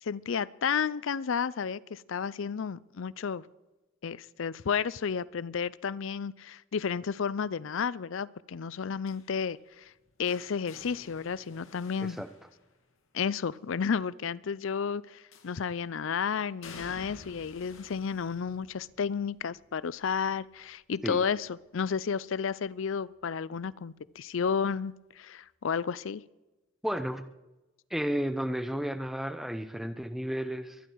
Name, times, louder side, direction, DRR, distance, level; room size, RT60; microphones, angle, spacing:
voice 1, 0.0-3.4 4.0-9.9 10.2-12.2 13.1-21.5 21.7-26.2, left 6 dB, 70° left, 21 dB, 0.5 m, -32 dB
sound 1, 9.1-13.1 15.3-15.9 16.6-22.4 22.8-23.2 24.4-24.5, left 3 dB, 85° left, 2.2 m, -53 dB
voice 2, 26.8-27.2 27.9-30.8, equal, ahead, 10 dB, 0.7 m, -32 dB
23.5 x 11.0 x 4.6 m, 1.1 s
head